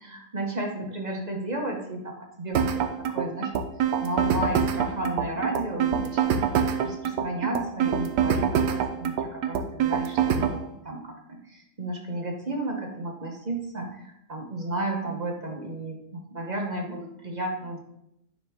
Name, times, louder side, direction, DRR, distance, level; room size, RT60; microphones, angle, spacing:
voice 1, 0.0-3.6 4.0-6.5 6.8-17.8, right 1 dB, 30° right, 1 dB, 0.9 m, -33 dB
sound 1, 2.5-10.6, right 8 dB, 80° right, 1.3 m, -25 dB
9.6 x 5.6 x 3.5 m, 0.82 s
omnidirectional pair, 1.9 m